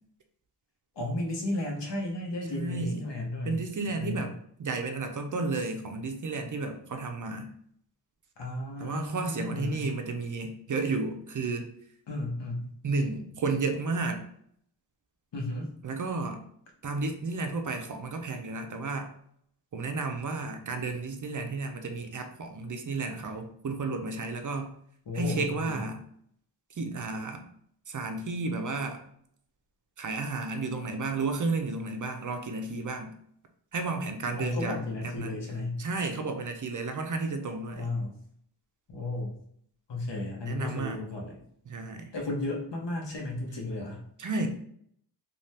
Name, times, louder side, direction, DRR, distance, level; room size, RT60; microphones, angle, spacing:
voice 1, 1.0-3.6 4.0-4.3 8.4-9.8 12.1-12.7 15.3-15.7 25.1-25.8 34.4-35.8 37.7-38.2 38.9-39.3 39.9-41.4 42.1-44.0, left 2 dB, 80° left, 0 dB, 0.8 m, -34 dB
voice 2, 2.5-3.0 3.4-4.3 4.6-7.5 8.8-11.7 12.8-14.2 15.8-16.4 16.8-19.1 19.7-24.7 25.1-26.0 26.8-27.4 27.9-29.0 30.0-33.1 33.7-34.8 35.2-35.4 35.8-37.9 40.5-41.1 41.7-42.1 44.2-44.5, right 3 dB, 50° right, 5 dB, 0.5 m, -32 dB
2.7 x 2.3 x 3.2 m, 0.67 s
wide cardioid pair, 75°, 42 cm